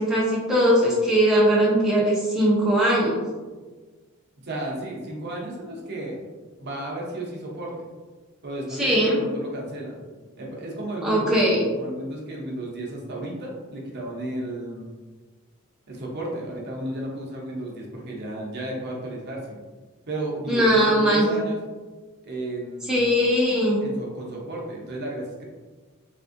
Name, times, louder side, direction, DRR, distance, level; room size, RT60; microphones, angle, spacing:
voice 1, 0.0-3.2 8.8-9.2 11.0-11.7 20.5-21.2 22.9-23.8, equal, ahead, -7 dB, 0.5 m, -20 dB
voice 2, 4.4-6.2 6.6-7.7 8.4-9.9 10.4-14.9 15.9-19.6 20.1-21.6 22.2-23.1 23.8-25.4, right 1 dB, 50° right, -2 dB, 0.7 m, -33 dB
3.4 x 2.5 x 2.5 m, 1.3 s
head